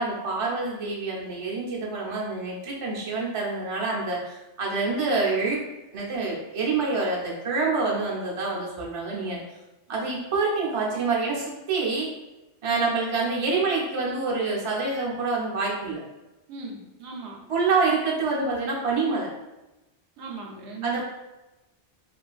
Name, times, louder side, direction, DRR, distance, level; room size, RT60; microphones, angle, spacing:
voice 1, 0.0-5.6 5.9-9.4 9.9-12.1 12.6-16.0 17.5-19.3 20.8-21.0, right 3 dB, 35° right, -4 dB, 0.6 m, -26 dB
voice 2, 16.5-17.4 20.2-21.0, right 3 dB, 90° right, 0 dB, 0.9 m, -38 dB
2.6 x 2.5 x 2.3 m, 1.0 s
omnidirectional pair, 1.1 m